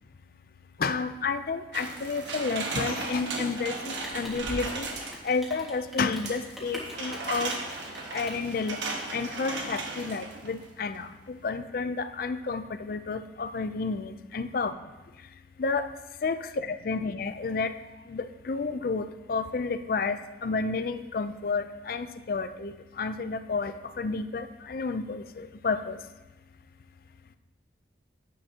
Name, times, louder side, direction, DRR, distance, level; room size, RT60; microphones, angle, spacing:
voice 1, 0.8-4.9 5.2-7.5 8.1-8.8 9.1-14.7 15.6-15.9 16.2-16.4 16.9-17.7 18.1-26.0, left 4 dB, 50° left, 11 dB, 0.4 m, -31 dB
sound 1, 1.7-5.4 6.3-10.7 11.0-11.1, right 3 dB, 80° right, 1.3 m, -36 dB
Rain, 3.0-9.8, equal, ahead, 1.7 m, -43 dB
9.9 x 8.6 x 2.8 m, 1.1 s
head